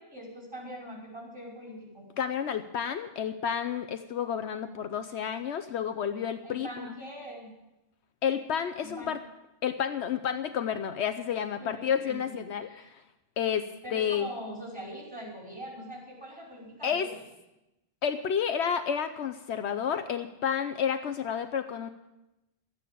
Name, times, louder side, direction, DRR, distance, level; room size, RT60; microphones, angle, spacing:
voice 1, 0.0-2.1 6.4-7.5 8.8-9.1 11.6-12.9 13.8-17.1, equal, 5° right, -3 dB, 5.2 m, -42 dB
voice 2, 2.2-6.9 8.2-9.2 9.6-13.0 13.4-14.3 16.8-17.1 18.0-21.9, left 8 dB, 70° left, 9 dB, 1.0 m, -30 dB
13.5 x 9.3 x 8.3 m, 0.95 s
omnidirectional pair, 1.2 m